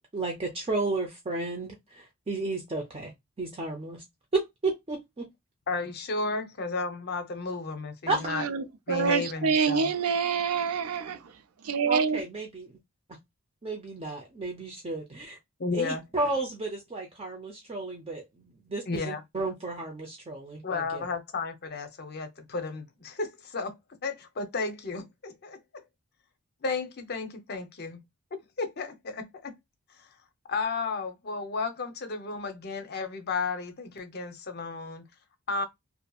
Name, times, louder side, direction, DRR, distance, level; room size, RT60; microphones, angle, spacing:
voice 1, 0.1-3.1 3.4-4.0 4.3-5.3 8.1-8.2 11.9-12.8 13.6-15.4 15.7-21.0, right 3 dB, 25° right, 0.5 m, -33 dB
voice 2, 5.7-8.5 8.9-9.9 15.6-16.0 18.9-19.2 20.6-23.7 24.0-25.6 26.6-28.0 28.6-29.5 30.0-30.1 30.5-35.0 35.5-35.6, left 4 dB, 45° left, 0.6 m, -33 dB
voice 3, 8.3-12.2, right 6 dB, 80° right, 0.5 m, -27 dB
2.7 x 2.6 x 2.2 m
head